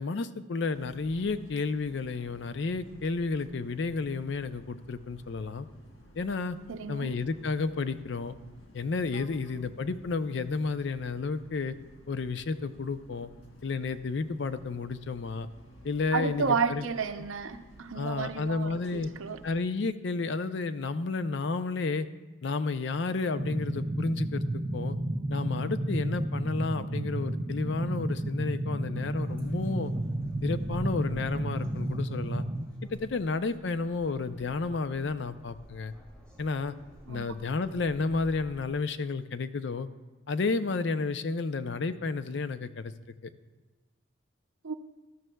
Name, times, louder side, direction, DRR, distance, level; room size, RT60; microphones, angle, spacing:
voice 1, 0.0-5.7 6.2-6.6 6.9-8.3 8.7-11.7 12.1-13.3 13.6-15.5 15.8-16.8 17.9-19.1 19.4-22.1 22.4-25.0 25.3-29.9 30.4-32.4 32.9-35.9 36.4-36.7 37.1-39.9 40.3-42.9, left 4 dB, 60° left, 12 dB, 0.4 m, -31 dB
sound 1, 0.6-19.6, equal, 75° left, 1.5 m, -55 dB
voice 2, 6.7-7.1 16.1-19.4 37.1-37.3 44.6-44.7, right 5 dB, 80° right, 9 dB, 0.6 m, -32 dB
sound 2, 23.4-32.7, right 1 dB, 25° right, 0.4 m, -32 dB
sound 3, 28.9-38.7, equal, 5° left, 2.0 m, -52 dB
17.0 x 12.5 x 2.2 m, 1.2 s
head